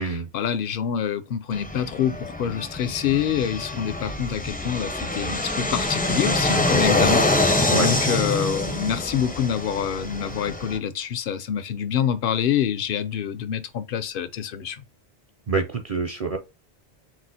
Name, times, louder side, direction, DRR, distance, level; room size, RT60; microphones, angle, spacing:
voice 1, 0.0-14.8, left 8 dB, 65° left, 0.7 m, -26 dB
Fixed-wing aircraft airplane, 1.5-10.8, left 2 dB, 15° left, 0.4 m, -25 dB
voice 2, 15.5-16.4, right 3 dB, 45° right, 0.5 m, -25 dB
6.0 x 2.4 x 2.7 m
omnidirectional pair, 1.1 m